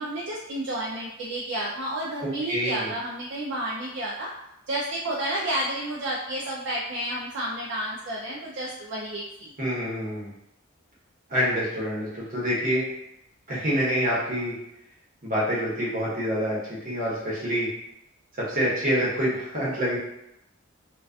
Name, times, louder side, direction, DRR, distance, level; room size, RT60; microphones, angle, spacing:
voice 1, 0.0-4.3 4.7-9.5, right 1 dB, 60° right, -4 dB, 0.3 m, -31 dB
voice 2, 2.5-2.9 9.6-10.3 11.3-12.8 13.5-14.5 15.2-16.6 16.8-17.7 18.4-20.0, equal, 40° right, -7 dB, 0.9 m, -26 dB
2.3 x 2.2 x 2.4 m, 0.85 s
head